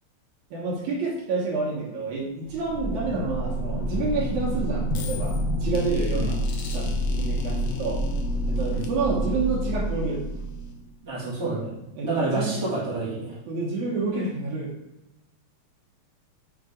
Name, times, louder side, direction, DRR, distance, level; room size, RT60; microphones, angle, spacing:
voice 1, 0.5-6.4 6.7-8.0 8.5-10.2 11.9-12.6 13.5-14.7, right 3 dB, 75° right, -3 dB, 2.5 m, -29 dB
sound 1, 2.4-10.9, equal, 90° left, 1.1 m, -28 dB
voice 2, 11.0-11.8 12.0-13.4, right 3 dB, 10° right, -10 dB, 2.2 m, -28 dB
6.6 x 3.9 x 5.1 m, 0.92 s
omnidirectional pair, 3.5 m